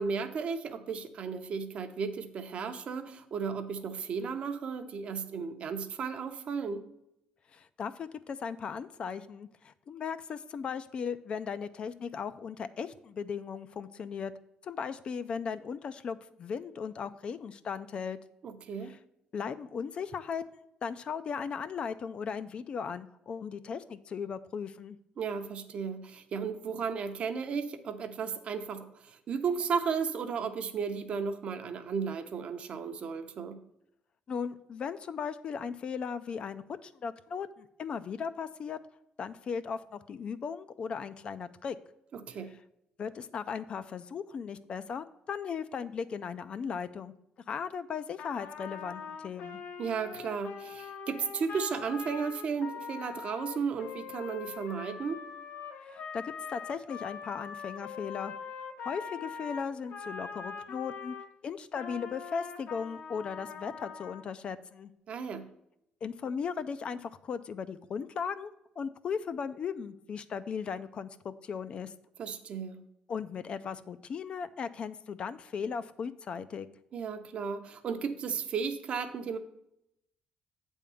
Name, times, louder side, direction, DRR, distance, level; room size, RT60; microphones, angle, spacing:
voice 1, 0.0-6.8 18.4-18.9 25.2-33.6 42.1-42.5 49.8-55.2 65.1-65.5 72.2-72.8 76.9-79.4, right 6 dB, 45° right, 8 dB, 0.6 m, -34 dB
voice 2, 7.5-14.3 14.6-18.2 18.8-19.0 19.3-25.0 34.3-38.8 39.2-41.8 43.0-47.1 47.5-49.6 55.8-58.3 58.8-61.2 61.4-64.9 66.0-68.5 68.8-71.9 73.1-76.7, left 6 dB, 40° left, 13 dB, 0.3 m, -37 dB
Trumpet, 48.2-61.3 61.7-64.3, left 6 dB, 65° left, 0.9 m, -43 dB
8.4 x 3.6 x 6.7 m, 0.81 s
cardioid pair, 160°, 3 cm